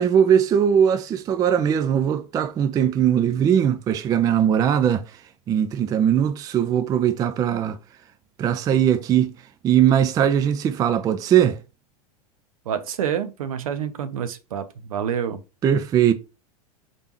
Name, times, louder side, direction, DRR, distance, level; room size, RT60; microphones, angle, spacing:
voice 1, 0.0-5.0 5.5-7.8 8.4-9.3 9.6-11.6 15.6-16.1, right 9 dB, 20° right, 0.3 m, -20 dB
voice 2, 12.7-15.4, right 8 dB, 65° right, 0.7 m, -28 dB
4.3 x 3.3 x 3.0 m
figure-of-eight pair, 90°, 20 cm